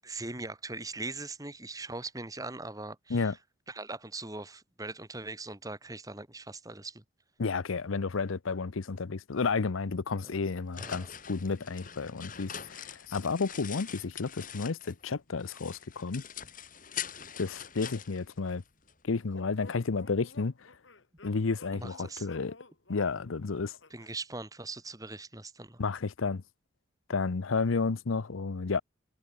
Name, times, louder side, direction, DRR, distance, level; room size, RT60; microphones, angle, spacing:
voice 1, 0.0-3.3 3.7-7.0 10.2-10.3 10.8-11.1 21.7-22.3 23.9-25.8, right 3 dB, 15° right, 2.1 m, -41 dB
voice 2, 7.4-16.2 17.4-18.6 19.0-20.5 21.2-22.6 22.9-23.7 25.8-26.4 27.1-28.8, left 4 dB, 85° left, 0.7 m, -31 dB
sound 1, 10.4-15.1 15.4-18.9, left 9 dB, 40° left, 7.4 m, -43 dB
sound 2, 19.3-24.2, left 3 dB, 70° left, 3.4 m, -53 dB
head